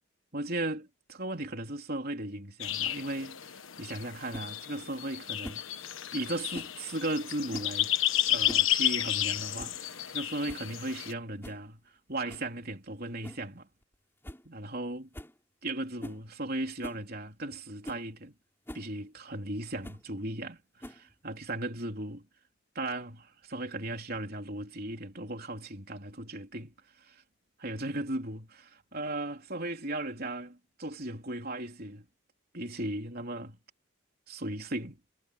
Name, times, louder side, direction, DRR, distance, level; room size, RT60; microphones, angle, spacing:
voice 1, 0.3-5.6 6.1-7.9 8.3-11.8 12.1-13.7 14.4-15.1 15.6-18.3 18.7-22.3 22.8-27.2 27.6-32.1 32.5-33.6 34.3-35.0, right 1 dB, 45° right, 3.7 m, -37 dB
sound 1, 2.6-11.1, left 12 dB, 70° left, 1.4 m, -32 dB
sound 2, 4.3-4.5 5.4-5.7 6.5-6.8 7.5-7.8 8.3-8.7 9.0-9.1 9.6-9.8 10.2-10.3 10.5-10.7 11.4-11.6 12.3-12.5 13.2-13.5 13.8-13.9 14.2-14.4 14.7-14.8 15.1-15.4 16.0-16.2 16.8-17.0 17.5-17.6 17.8-18.0 18.7-18.9 19.8-20.1 20.8-21.2, equal, 10° left, 4.9 m, -43 dB
head